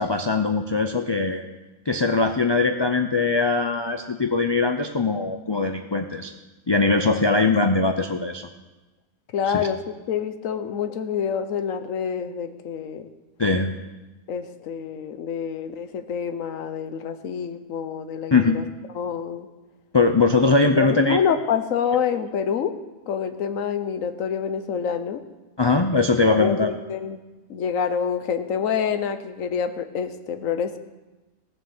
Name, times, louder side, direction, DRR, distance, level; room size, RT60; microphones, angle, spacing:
voice 1, 0.0-1.4 1.9-6.3 6.7-8.5 9.5-9.7 13.4-13.7 18.3-18.6 19.9-21.2 25.6-26.7, left 3 dB, 40° left, 6 dB, 0.3 m, -21 dB
voice 2, 9.3-9.8 10.1-13.1 14.3-18.6 18.9-19.5 20.7-22.7 23.1-25.2 26.4-27.2 27.5-30.8, left 7 dB, 75° left, 10 dB, 1.3 m, -27 dB
15.5 x 7.5 x 7.1 m, 1.1 s
omnidirectional pair, 1.4 m